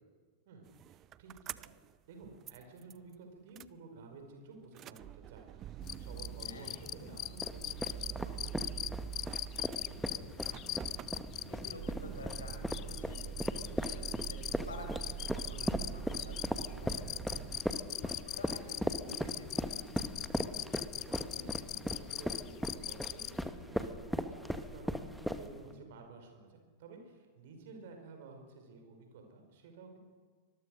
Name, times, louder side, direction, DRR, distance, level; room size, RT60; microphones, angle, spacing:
voice 1, 0.5-1.8 2.1-7.8 8.1-8.8 21.0-30.0, right 3 dB, 55° right, 4 dB, 5.2 m, -53 dB
sound 1, 0.7-2.0 2.2-3.1 3.6-3.7 4.6-17.6, right 10 dB, 30° right, 0.6 m, -45 dB
sound 2, 5.8-23.4, left 14 dB, 35° left, 0.6 m, -42 dB
voice 2, 6.4-6.8 9.9-10.6 11.2-13.5 13.8-17.7 18.0-20.3 25.5-25.8, left 2 dB, 75° left, 3 dB, 5.7 m, -51 dB
sound 3, 7.4-25.7, equal, ahead, 1.6 m, -38 dB
25.0 x 21.0 x 6.5 m, 1.5 s
figure-of-eight pair, 90°, 0 cm